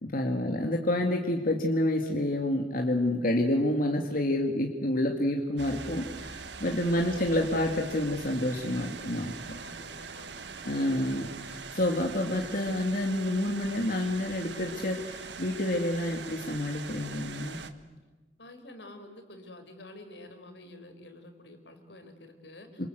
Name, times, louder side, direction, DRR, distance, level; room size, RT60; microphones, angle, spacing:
voice 1, 0.0-9.6 10.6-17.6 22.8-22.9, left 1 dB, 55° left, 2 dB, 2.2 m, -28 dB
sound 1, 5.6-17.7, right 5 dB, 85° right, 1.5 m, -42 dB
voice 2, 9.5-11.3 18.4-22.8, left 2 dB, 85° left, 6 dB, 4.4 m, -49 dB
27.5 x 27.0 x 8.0 m, 1.3 s
head